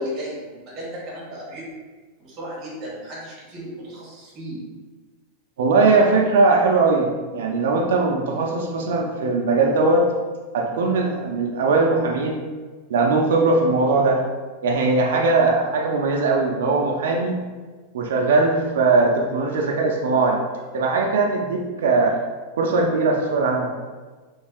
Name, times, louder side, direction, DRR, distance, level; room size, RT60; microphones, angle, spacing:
voice 1, 0.0-1.7 2.2-4.6, equal, 25° right, -6 dB, 1.1 m, -34 dB
voice 2, 5.6-10.1 10.5-12.4 12.9-14.2 14.6-17.4 17.9-20.4 20.7-22.1 22.6-23.7, right 3 dB, 85° right, 0 dB, 0.4 m, -20 dB
3.1 x 2.6 x 3.5 m, 1.4 s
supercardioid pair, 175°, 0 cm